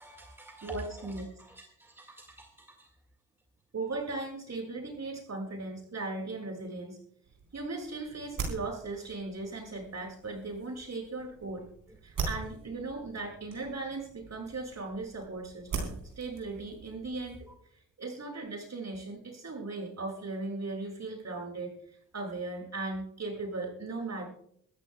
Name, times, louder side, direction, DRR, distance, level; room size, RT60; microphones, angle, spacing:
voice 1, 0.0-2.9, right 1 dB, 5° right, 4 dB, 1.8 m, -48 dB
voice 2, 0.6-1.3 3.7-7.0 7.5-11.7 12.0-17.5 18.0-24.2, right 3 dB, 45° right, -1 dB, 6.9 m, -38 dB
sound 1, 7.2-17.5, right 5 dB, 60° right, 4.5 m, -42 dB
23.0 x 14.0 x 2.3 m, 0.70 s
hypercardioid pair, 45°, 37 cm